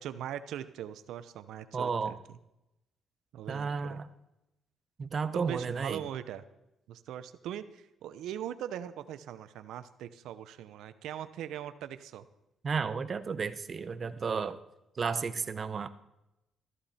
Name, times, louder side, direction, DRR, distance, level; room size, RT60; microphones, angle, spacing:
voice 1, 0.0-2.4 3.3-4.0 5.3-6.4 6.9-12.2, right 10 dB, 85° right, 12 dB, 0.8 m, -41 dB
voice 2, 1.7-2.1 3.5-4.1 5.0-6.0 12.6-14.6 15.0-15.9, right 5 dB, 40° right, 12 dB, 0.9 m, -32 dB
14.0 x 14.0 x 4.3 m, 0.91 s
cardioid pair, 90°, 0 cm